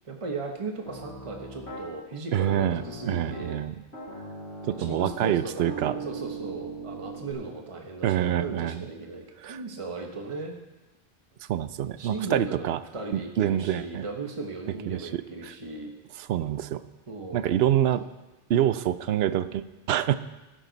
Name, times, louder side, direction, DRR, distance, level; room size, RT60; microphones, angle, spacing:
voice 1, 0.0-3.6 4.8-10.5 12.0-15.9 17.1-17.7, right 3 dB, 30° right, 2 dB, 1.1 m, -37 dB
Piano, 0.8-1.8 2.3-3.6 3.9-7.3, right 2 dB, 80° left, 3.8 m, -39 dB
voice 2, 2.3-3.8 4.6-6.0 8.0-8.9 9.4-9.6 11.5-12.8 13.1-14.0 14.9-15.5 16.2-16.8 17.3-18.0 18.5-20.2, right 11 dB, 70° right, 14 dB, 0.8 m, -26 dB
13.5 x 11.0 x 4.1 m, 1.1 s
omnidirectional pair, 1.1 m